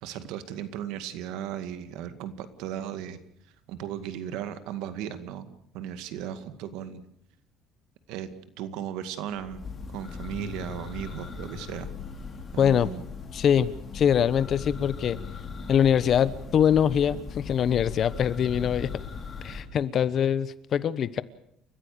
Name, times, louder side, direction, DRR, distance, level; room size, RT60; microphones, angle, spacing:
voice 1, 0.0-3.2 3.7-7.0 8.1-8.3 8.6-9.6 9.9-11.9 12.5-13.0, right 10 dB, 80° right, 11 dB, 2.1 m, -36 dB
Church bell, 9.3-19.6, left 5 dB, 25° left, 4.3 m, -39 dB
voice 2, 12.6-12.9 13.3-15.2 15.7-18.9 19.4-21.2, left 8 dB, 40° left, 16 dB, 1.1 m, -23 dB
29.5 x 15.0 x 6.8 m, 0.71 s
cardioid pair, 145°, 0 cm